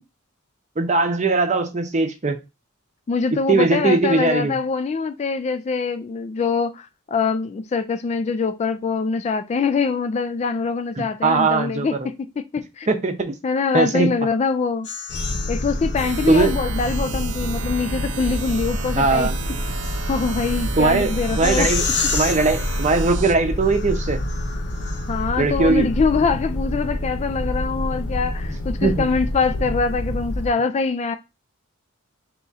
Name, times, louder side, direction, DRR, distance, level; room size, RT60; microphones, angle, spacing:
voice 1, 0.8-2.4 3.5-4.5 11.0-12.1 12.9-13.3 13.7-14.1 16.3-16.5 19.0-19.3 20.8-21.8 22.1-24.2 25.4-25.9 28.8-29.1, right 3 dB, 35° right, 0.7 m, -20 dB
voice 2, 3.1-12.3 12.5-12.9 13.4-14.9 15.5-19.3 20.1-21.7 25.1-31.2, left 4 dB, 30° left, 0.3 m, -24 dB
sound 1, 14.8-16.8 18.3-25.4, left 5 dB, 55° left, 0.8 m, -32 dB
sound 2, 15.1-30.5, left 1 dB, 90° left, 0.8 m, -27 dB
sound 3, 16.0-23.3, right 7 dB, 90° right, 0.5 m, -34 dB
3.6 x 2.9 x 4.0 m
head